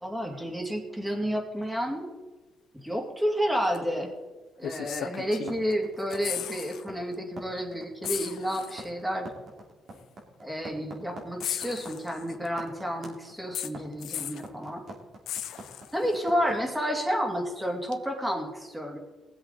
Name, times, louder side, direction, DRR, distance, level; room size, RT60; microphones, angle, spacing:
voice 1, 0.0-2.1 2.8-4.1 4.6-9.3 10.4-14.8 15.9-19.0, equal, 10° right, 1 dB, 2.7 m, -30 dB
sound 1, 3.7-3.9 4.6-5.7 6.0-6.8 7.1-7.3 8.0-8.9 9.9-10.0 11.4-12.5 13.5-14.5 15.3-16.2 17.9-18.0, left 11 dB, 80° left, 0.6 m, -36 dB
sound 2, 5.5-16.5, right 2 dB, 55° right, 2.9 m, -44 dB
19.0 x 7.9 x 4.1 m, 1.2 s
cardioid pair, 90°, 0 cm